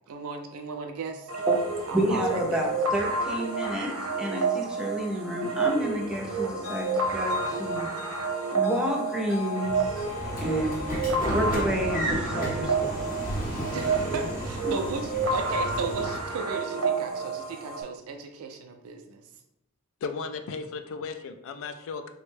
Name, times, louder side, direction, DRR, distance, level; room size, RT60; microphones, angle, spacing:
voice 1, 0.1-1.3 1.9-2.7 13.7-19.2, right 4 dB, 70° right, 5 dB, 0.4 m, -35 dB
sound 1, 1.3-17.8, right 4 dB, 85° right, 0.9 m, -30 dB
voice 2, 1.9-7.9 8.5-10.1 10.4-10.9 11.3-12.9 14.6-14.7, equal, 5° right, -2 dB, 0.5 m, -30 dB
sound 2, 6.6-13.8, left 3 dB, 80° left, 0.8 m, -41 dB
Train / Sliding door, 9.8-16.4, right 1 dB, 35° left, 0.7 m, -33 dB
voice 3, 20.0-22.1, left 5 dB, 60° left, 8 dB, 0.3 m, -35 dB
3.4 x 2.1 x 3.2 m, 0.86 s
head